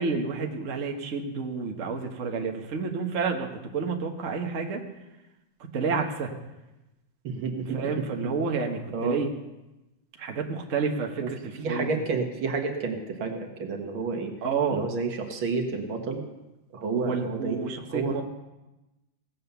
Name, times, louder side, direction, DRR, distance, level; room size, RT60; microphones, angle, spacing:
voice 1, 0.0-4.8 5.7-6.3 7.7-9.3 10.2-12.0 14.4-14.8 16.9-18.2, right 5 dB, 45° right, 2 dB, 1.4 m, -30 dB
voice 2, 7.2-7.8 8.9-9.2 11.2-11.3 11.6-14.3 14.7-16.2 16.7-17.6 17.9-18.2, right 4 dB, 75° right, 3 dB, 2.3 m, -30 dB
17.5 x 7.6 x 6.9 m, 1.0 s
omnidirectional pair, 2.2 m